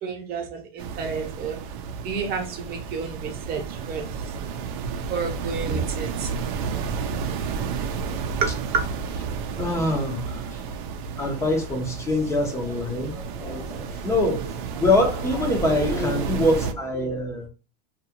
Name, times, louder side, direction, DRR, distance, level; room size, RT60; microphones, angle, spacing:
voice 1, 0.0-1.6 2.0-4.0 4.9-6.3 8.4-8.8, right 5 dB, 30° right, 1.0 m, -30 dB
sound 1, 0.8-16.7, right 5 dB, 55° right, 0.6 m, -31 dB
voice 2, 9.5-10.7 11.2-17.5, left 1 dB, 10° left, 0.7 m, -24 dB
2.7 x 2.4 x 2.9 m
supercardioid pair, 150°, 30 cm